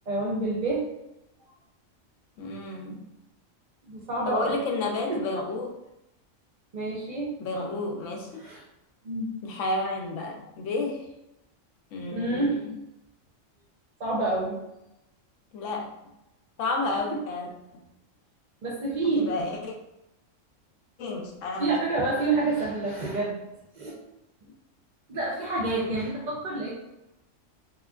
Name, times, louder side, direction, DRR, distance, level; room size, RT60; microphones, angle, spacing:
voice 1, 0.1-0.8 3.8-4.5 5.1-5.2 6.7-7.3 8.4-8.6 9.0-9.3 12.1-12.6 14.0-14.6 18.6-19.3 21.6-23.5 23.7-23.9 25.1-26.7, right 2 dB, 50° right, -4 dB, 0.6 m, -28 dB
voice 2, 2.4-3.0 4.3-5.7 7.4-8.4 9.4-11.1 11.9-12.4 15.5-15.9 16.6-17.8 19.2-19.8 21.0-21.7, left 2 dB, 80° left, 2 dB, 1.0 m, -31 dB
4.0 x 3.0 x 2.3 m, 0.89 s
omnidirectional pair, 1.3 m